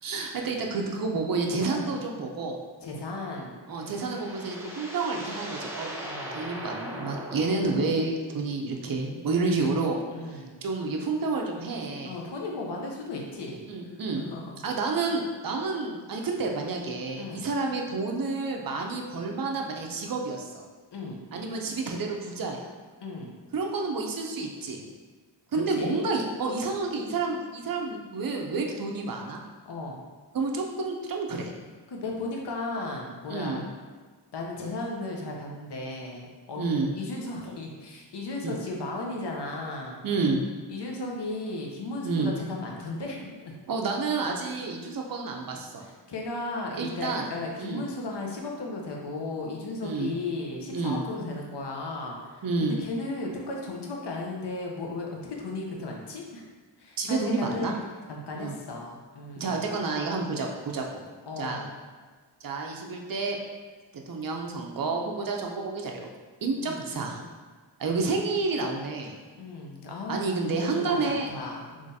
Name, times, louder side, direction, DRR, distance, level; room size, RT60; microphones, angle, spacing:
voice 1, 0.0-2.6 3.7-5.9 6.3-10.0 10.3-12.1 13.7-14.3 14.6-20.6 21.3-22.7 23.5-24.9 25.5-29.4 30.3-31.5 33.3-33.6 36.6-36.9 38.4-38.5 40.0-40.4 42.0-42.3 43.7-45.8 46.8-47.3 47.6-47.8 49.8-50.1 50.7-51.0 52.4-52.8 57.0-57.7 58.4-58.5 59.4-61.0 61.4-61.6 62.4-63.4 64.1-66.1 66.4-67.2 67.8-69.1 70.1-71.3, right 3 dB, 50° right, 1 dB, 0.5 m, -29 dB
voice 2, 2.8-3.6 6.0-6.5 10.1-10.5 12.0-13.6 14.2-14.4 17.1-17.5 20.9-21.2 23.0-23.3 25.5-26.0 29.6-30.0 31.9-33.6 34.3-36.7 36.9-40.0 40.7-43.5 45.8-56.5 56.8-57.7 58.1-59.6 61.3-61.7 66.6-66.8 69.4-71.9, left 2 dB, 65° left, -1 dB, 0.7 m, -35 dB
sound 1, 3.5-8.6, right 1 dB, 5° right, 0.5 m, -40 dB
3.7 x 3.2 x 2.7 m, 1.4 s
wide cardioid pair, 110°, 44 cm